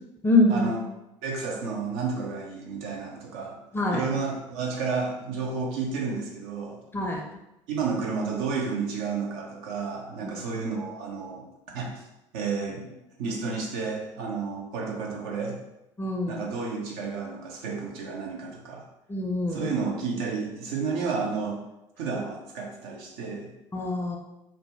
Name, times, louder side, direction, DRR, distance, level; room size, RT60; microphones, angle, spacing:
voice 1, 0.2-0.7 3.7-4.1 6.9-7.2 10.2-10.3 16.0-16.4 19.1-19.7 23.7-24.2, left 2 dB, 15° left, 0 dB, 0.5 m, -24 dB
voice 2, 1.2-3.6 3.9-6.8 7.7-11.5 11.7-12.0 12.3-15.6 16.3-18.9 19.5-21.6 22.0-23.5, right 4 dB, 60° right, -1 dB, 0.6 m, -31 dB
2.6 x 2.1 x 3.3 m, 0.90 s
figure-of-eight pair, 60°, 15 cm